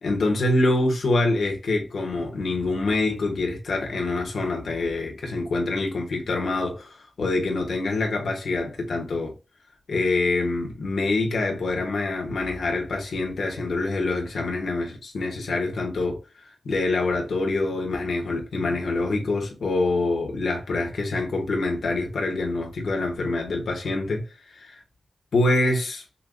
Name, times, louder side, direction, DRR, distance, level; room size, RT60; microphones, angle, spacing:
voice 1, 0.0-9.3 9.9-16.2 16.6-24.2 24.5-24.8 25.3-26.0, left 2 dB, 90° left, 1.5 m, -25 dB
5.6 x 2.5 x 2.3 m
cardioid pair, 70°, 0 cm